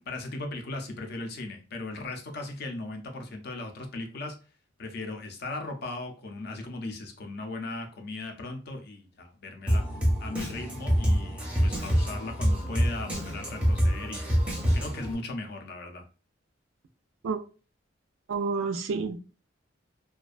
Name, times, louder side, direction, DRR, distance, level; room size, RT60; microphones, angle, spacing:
voice 1, 0.1-4.3 4.8-9.8 10.2-14.3 14.7-16.0, left 2 dB, 55° left, 0.5 m, -37 dB
Drum kit, 9.7-15.1, equal, 5° right, 0.5 m, -26 dB
voice 2, 18.3-19.2, right 4 dB, 90° right, 0.4 m, -29 dB
2.4 x 2.2 x 2.4 m
head